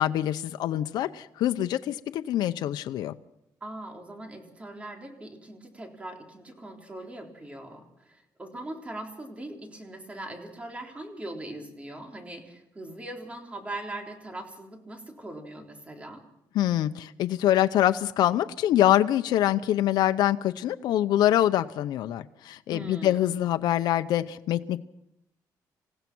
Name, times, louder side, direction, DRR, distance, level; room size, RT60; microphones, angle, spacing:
voice 1, 0.0-3.2 16.5-24.8, left 12 dB, 85° left, 9 dB, 0.7 m, -25 dB
voice 2, 3.6-16.2 22.7-23.4, right 1 dB, 20° right, 2 dB, 3.8 m, -41 dB
27.5 x 16.0 x 6.1 m, 0.82 s
cardioid pair, 125°, 7 cm